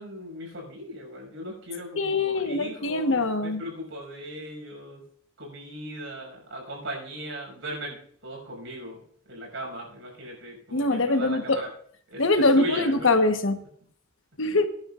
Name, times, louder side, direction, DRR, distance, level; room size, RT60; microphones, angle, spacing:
voice 1, 0.0-5.0 5.4-8.0 8.2-9.0 9.3-11.7 12.1-12.2 12.6-13.2, equal, 75° right, 0 dB, 6.1 m, -38 dB
voice 2, 2.0-3.6 10.7-11.6 12.2-13.6 14.4-14.7, left 2 dB, 75° left, 7 dB, 1.2 m, -23 dB
23.0 x 10.5 x 2.5 m, 0.63 s
head